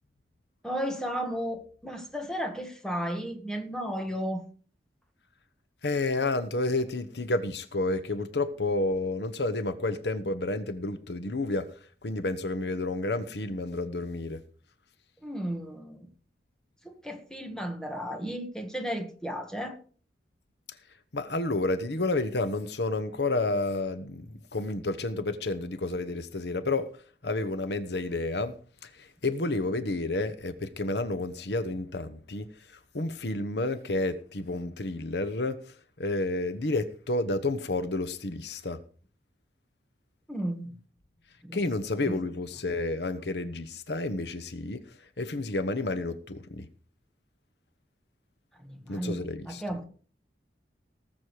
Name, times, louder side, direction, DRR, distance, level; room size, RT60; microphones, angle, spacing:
voice 1, 0.6-4.4 15.2-16.1 16.9-19.8 40.3-40.7 41.4-41.6 42.1-42.2 48.6-49.8, equal, 5° left, 1.8 m, -34 dB
voice 2, 5.8-11.7 12.0-14.4 21.1-26.9 27.2-28.5 29.0-32.5 32.9-35.6 36.0-38.8 41.5-44.8 45.2-46.7 48.9-49.6, left 2 dB, 75° left, 1.1 m, -30 dB
18.5 x 7.6 x 4.9 m
head